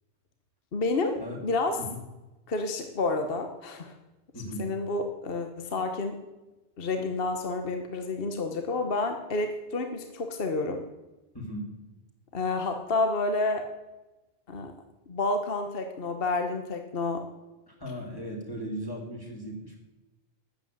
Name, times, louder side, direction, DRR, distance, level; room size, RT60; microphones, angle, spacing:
voice 1, 0.7-1.8 2.5-4.0 4.6-6.2 6.8-10.8 12.3-13.7 14.5-14.7 15.1-17.3, left 3 dB, 50° left, 6 dB, 1.3 m, -29 dB
voice 2, 4.3-4.7 11.3-11.7 17.7-19.8, equal, 15° left, -1 dB, 3.0 m, -37 dB
13.0 x 8.2 x 9.0 m, 1.1 s
omnidirectional pair, 1.3 m